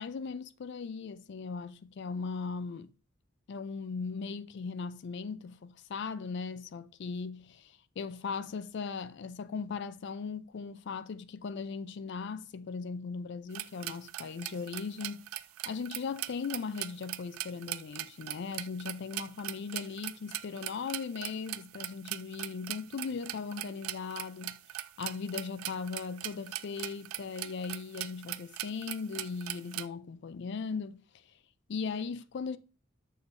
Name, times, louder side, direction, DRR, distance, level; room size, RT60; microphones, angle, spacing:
voice 1, 0.0-2.9 3.5-15.3 15.7-24.6 25.0-31.0 31.7-32.6, left 5 dB, 55° left, 0.4 m, -38 dB
sound 1, 13.5-29.9, right 15 dB, 85° right, 0.3 m, -39 dB
7.0 x 6.3 x 2.6 m
head